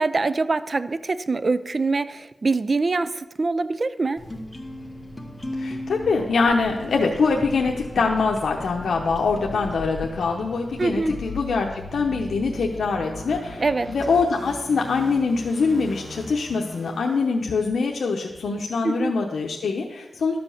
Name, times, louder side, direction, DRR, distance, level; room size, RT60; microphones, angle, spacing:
voice 1, 0.0-4.2 10.8-11.1 13.6-13.9 18.8-19.1, right 3 dB, 40° right, 14 dB, 0.5 m, -24 dB
sound 1, 4.2-11.4, left 1 dB, 10° left, 1.2 m, -37 dB
voice 2, 5.6-13.6 13.9-20.4, left 4 dB, 85° left, 0 dB, 0.8 m, -24 dB
sound 2, 6.4-17.3, left 2 dB, 5° right, 2.3 m, -39 dB
12.5 x 5.2 x 7.1 m, 1.1 s
wide cardioid pair, 105°, 0 cm